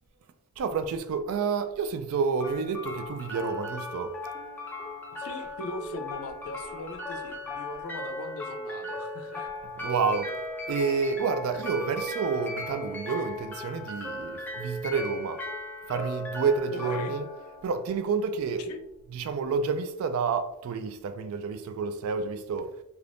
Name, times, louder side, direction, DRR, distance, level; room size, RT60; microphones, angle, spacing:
voice 1, 0.6-4.2 9.8-10.3 10.7-15.4 15.9-17.3 17.6-18.7 19.1-22.7, right 5 dB, 75° right, 0.3 m, -29 dB
sound 1, 2.4-18.4, left 1 dB, 10° left, 0.5 m, -37 dB
voice 2, 5.2-9.5 11.5-11.6 16.7-17.1 18.6-18.8, left 2 dB, 80° left, 0.5 m, -40 dB
3.4 x 2.8 x 2.5 m
head